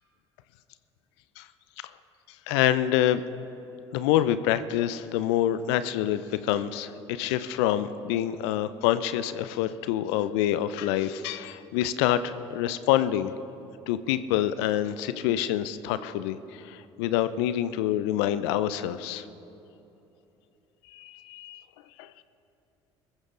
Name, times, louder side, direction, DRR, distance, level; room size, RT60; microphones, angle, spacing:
voice 1, 2.5-3.2 3.9-13.3 13.9-19.3 20.9-21.6 22.0-22.1, left 12 dB, 70° left, 14 dB, 0.6 m, -26 dB
22.5 x 14.5 x 3.9 m, 3.0 s
hypercardioid pair, 60°, 14 cm